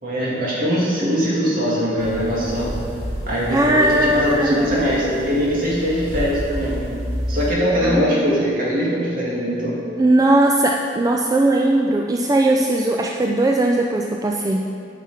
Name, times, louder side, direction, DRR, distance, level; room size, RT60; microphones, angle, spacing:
voice 1, 0.0-2.7 3.3-6.8 7.3-9.8, equal, 55° right, -6 dB, 2.3 m, -21 dB
sound 1, 2.0-7.5, equal, 90° right, 2.2 m, -30 dB
voice 2, 3.5-4.8 7.8-8.2 10.0-14.7, right 1 dB, 20° right, 1 dB, 0.3 m, -19 dB
8.9 x 5.9 x 4.8 m, 2.5 s
head